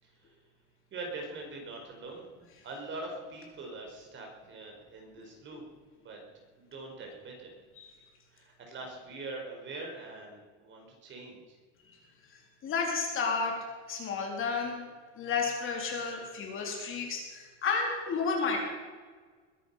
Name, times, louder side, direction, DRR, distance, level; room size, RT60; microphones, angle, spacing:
voice 1, 0.0-0.3 0.9-5.6 6.0-6.2 6.6-7.5 8.3-11.6, right 2 dB, 35° right, 1 dB, 4.9 m, -43 dB
voice 2, 12.6-13.6 13.9-14.8 15.2-18.6, left 5 dB, 35° left, 1 dB, 3.8 m, -31 dB
21.5 x 10.5 x 5.7 m, 1.5 s
cardioid pair, 140°, 34 cm